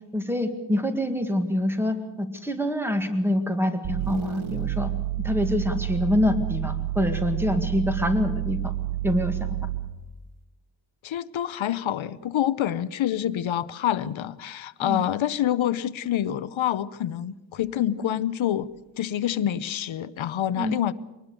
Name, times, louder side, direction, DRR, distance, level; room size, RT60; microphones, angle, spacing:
voice 1, 0.1-4.9 5.2-8.7 9.0-9.6 14.8-15.0 18.0-18.1 20.6-20.8, left 1 dB, 5° right, 6 dB, 1.9 m, -26 dB
sound 1, 3.8-10.0, right 15 dB, 85° right, 1.2 m, -29 dB
voice 2, 11.0-18.7 19.0-20.9, left 11 dB, 80° left, 15 dB, 0.7 m, -27 dB
23.0 x 19.5 x 6.7 m, 1.1 s
wide cardioid pair, 170°, 46 cm